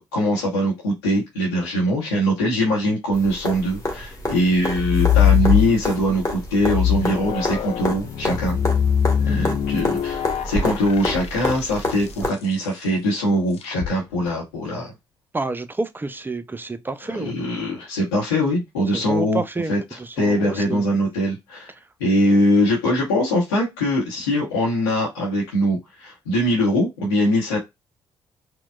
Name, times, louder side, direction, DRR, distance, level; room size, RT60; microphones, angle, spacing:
voice 1, 0.1-8.6 9.2-14.9 17.1-19.4 19.7-19.8 20.2-21.7 22.0-27.6, equal, 90° left, 1.0 m, -22 dB
sound 1, 3.1-12.3 14.3-14.4, left 1 dB, 25° left, 1.4 m, -29 dB
sound 2, 4.7-6.1 6.6-12.1 13.6-13.9, left 10 dB, 60° left, 0.6 m, -22 dB
voice 2, 15.3-17.4 18.9-20.8, right 3 dB, 15° right, 0.6 m, -29 dB
4.4 x 2.2 x 2.3 m
hypercardioid pair, 45°, 12 cm